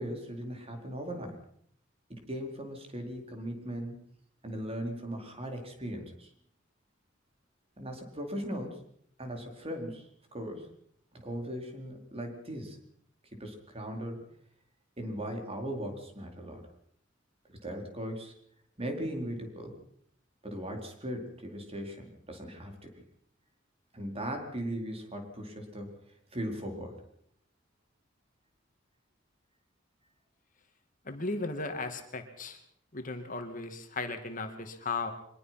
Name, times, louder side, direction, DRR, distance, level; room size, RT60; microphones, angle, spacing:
voice 1, 0.0-1.4 2.1-4.0 4.4-6.3 7.8-8.8 9.2-10.7 11.1-12.8 13.3-14.2 15.0-16.6 17.6-18.3 18.8-19.8 20.4-22.9 23.9-25.9 26.3-27.0, equal, 30° right, 3 dB, 4.5 m, -38 dB
voice 2, 31.1-32.6 32.9-35.1, left 3 dB, 45° left, 6 dB, 2.5 m, -36 dB
24.0 x 21.5 x 6.0 m, 0.65 s
head